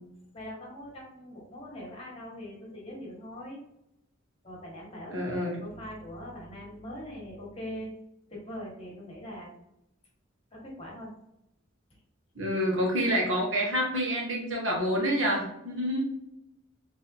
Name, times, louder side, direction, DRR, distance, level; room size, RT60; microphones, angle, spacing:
voice 1, 0.3-3.6 4.4-5.3 5.6-7.9 8.3-9.5 10.5-11.1, equal, 30° left, -3 dB, 1.4 m, -42 dB
voice 2, 5.1-5.6 12.3-16.0, equal, 70° right, -2 dB, 1.4 m, -28 dB
4.1 x 3.2 x 2.7 m, 0.82 s
head